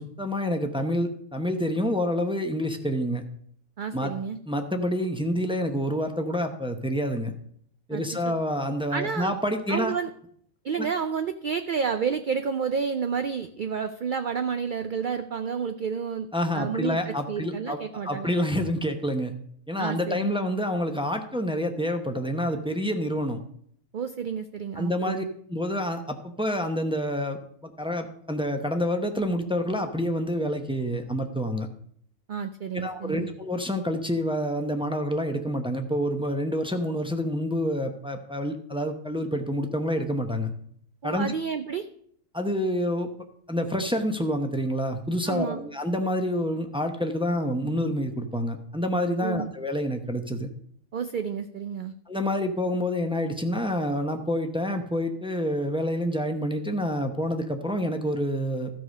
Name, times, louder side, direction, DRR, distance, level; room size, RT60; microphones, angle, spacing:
voice 1, 0.0-3.2 3.9-4.1 4.5-7.3 7.9-9.9 10.8-10.9 16.3-19.3 19.7-23.4 24.7-25.2 25.5-31.7 32.7-40.5 41.0-41.3 42.3-43.1 43.5-50.5 52.1-58.7, equal, 5° right, 5 dB, 0.6 m, -28 dB
voice 2, 3.8-4.4 7.9-8.3 8.9-9.3 9.7-10.1 10.6-16.3 16.5-18.3 19.8-20.5 23.9-25.2 32.3-33.3 41.0-41.9 45.3-45.6 49.2-49.5 50.9-51.9, right 6 dB, 80° right, 9 dB, 0.4 m, -30 dB
13.5 x 4.9 x 6.4 m, 0.65 s
omnidirectional pair, 1.4 m